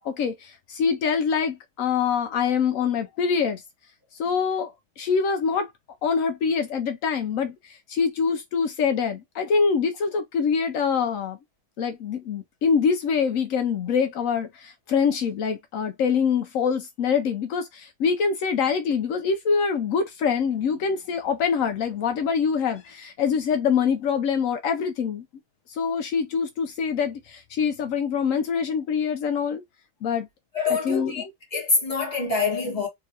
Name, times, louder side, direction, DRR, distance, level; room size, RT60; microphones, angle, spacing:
voice 1, 0.0-3.6 4.2-5.7 6.0-11.4 11.8-25.2 25.7-29.6 30.0-30.3 30.7-31.2, left 6 dB, 85° left, 0.7 m, -25 dB
voice 2, 30.5-31.2 31.5-32.9, left 4 dB, 20° left, 1.5 m, -25 dB
3.7 x 3.1 x 2.8 m
omnidirectional pair, 2.1 m